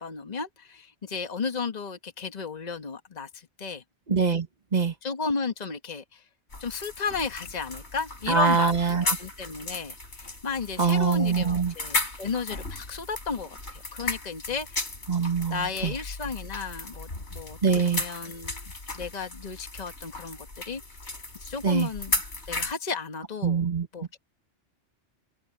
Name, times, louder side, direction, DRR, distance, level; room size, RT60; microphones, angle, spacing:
voice 1, 0.0-3.8 5.0-6.2 6.6-8.7 9.0-14.9 15.5-20.8 21.4-22.1 22.5-23.6 23.9-24.2, left 4 dB, 35° left, 1.5 m, -33 dB
voice 2, 4.1-4.5 4.7-4.9 8.3-9.0 10.8-11.7 15.1-15.9 17.6-18.0 21.6-21.9 23.4-23.9, right 5 dB, 35° right, 1.6 m, -23 dB
sound 1, 6.5-22.7, left 2 dB, 70° left, 4.3 m, -35 dB
open air
omnidirectional pair, 1.2 m